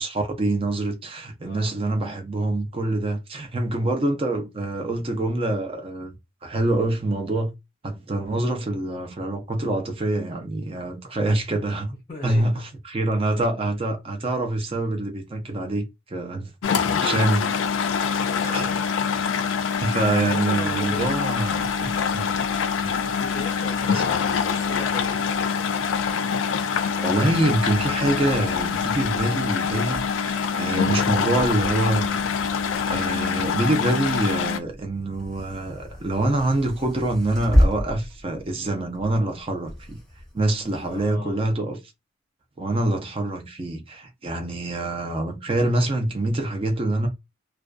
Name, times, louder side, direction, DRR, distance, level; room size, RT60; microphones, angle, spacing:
voice 1, 0.0-6.2 6.4-7.5 7.8-11.9 12.2-16.5 17.0-17.6 18.4-18.7 19.8-22.3 22.8-22.9 23.8-24.0 26.7-32.2 32.9-40.0 40.3-41.8 42.6-47.1, right 2 dB, 30° right, 0.5 m, -25 dB
voice 2, 12.1-12.6 16.6-17.3 18.6-18.9 20.3-21.3 23.0-25.3 30.8-31.0 40.9-41.4, left 2 dB, 25° left, 0.6 m, -37 dB
sound 1, 16.6-34.6, left 6 dB, 70° left, 0.3 m, -25 dB
sound 2, 27.3-41.1, equal, 5° left, 0.8 m, -31 dB
2.4 x 2.3 x 2.4 m
head